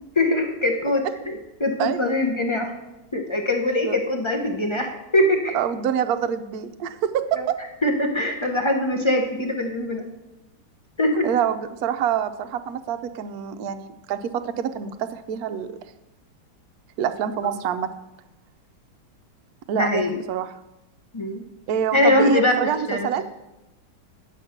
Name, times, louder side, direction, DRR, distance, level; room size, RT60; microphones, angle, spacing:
voice 1, 0.2-2.7 3.1-5.6 7.3-7.5 7.8-10.1 11.0-11.3 19.7-20.1 21.1-21.4 21.9-22.5 22.9-23.2, left 1 dB, 45° left, 3 dB, 0.3 m, -22 dB
voice 2, 1.8-2.1 3.8-4.0 5.5-7.6 11.2-15.7 17.0-17.9 19.7-20.5 21.7-23.2, right 8 dB, 65° right, 9 dB, 1.0 m, -26 dB
9.8 x 7.8 x 5.8 m, 0.97 s
omnidirectional pair, 2.1 m